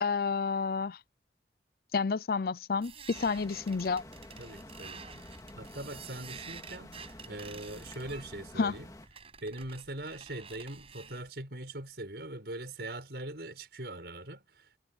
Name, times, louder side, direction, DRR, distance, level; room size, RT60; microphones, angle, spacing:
voice 1, 0.0-1.0 1.9-4.0 8.6-8.8, left 5 dB, 55° left, 0.5 m, -30 dB
sound 1, 2.8-11.3, right 6 dB, 35° right, 7.6 m, -50 dB
sound 2, 3.1-9.1, left 1 dB, 20° left, 2.3 m, -49 dB
voice 2, 4.4-5.2 5.6-8.9 9.4-14.8, right 1 dB, 65° right, 6.2 m, -42 dB
head